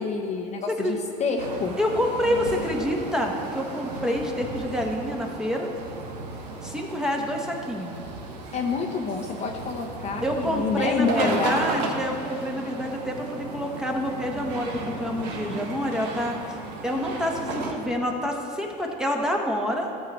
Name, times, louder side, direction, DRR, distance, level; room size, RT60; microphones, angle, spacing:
voice 1, 0.0-1.8 8.5-11.7, left 4 dB, 35° left, 2 dB, 0.8 m, -28 dB
voice 2, 0.7-1.0 1.8-5.7 6.6-7.9 10.2-19.9, equal, 5° right, 1 dB, 1.1 m, -27 dB
sound 1, 1.4-17.7, right 3 dB, 85° right, 1.2 m, -35 dB
13.5 x 6.6 x 3.1 m, 2.7 s
supercardioid pair, 100°, 20 cm